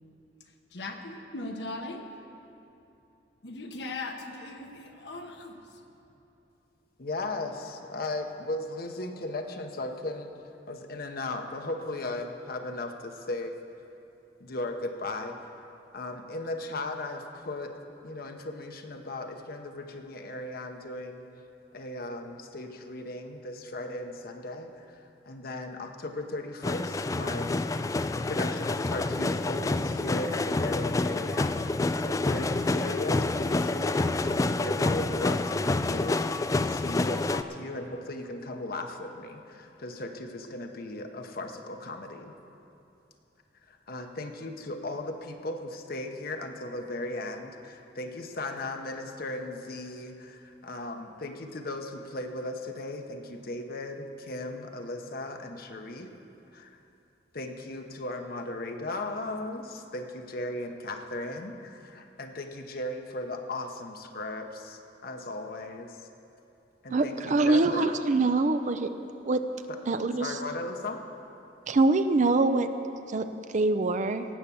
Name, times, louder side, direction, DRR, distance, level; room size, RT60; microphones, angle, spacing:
voice 1, 0.7-2.0 3.4-5.6 7.4-7.7, left 2 dB, 75° left, 3 dB, 1.2 m, -39 dB
voice 2, 7.0-10.3 10.7-13.5 14.4-15.5 15.9-17.7 18.0-21.2 21.7-27.6 28.1-31.5 32.0-42.3 43.7-56.1 56.5-56.7 57.3-66.1 66.8-68.0 69.7-69.8 70.2-71.0, left 2 dB, 60° left, 4 dB, 0.9 m, -37 dB
sound 1, 26.6-37.4, left 2 dB, 20° left, 0.3 m, -28 dB
voice 3, 66.9-68.9 69.2-69.4 69.9-70.3 71.7-72.7 73.1-73.3 73.5-74.3, right 3 dB, 45° right, 10 dB, 0.5 m, -24 dB
17.5 x 7.2 x 7.0 m, 2.9 s
head